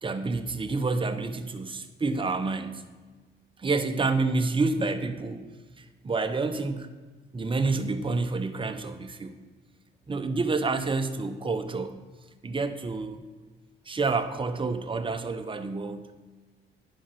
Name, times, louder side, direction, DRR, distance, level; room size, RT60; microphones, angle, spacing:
voice 1, 0.0-2.8 3.6-5.5 5.8-6.9 7.3-9.4 10.1-12.0 12.4-13.2 13.9-16.1, right 3 dB, 25° right, 8 dB, 0.8 m, -28 dB
10.0 x 5.6 x 5.8 m, 1.3 s
cardioid pair, 90°, 20 cm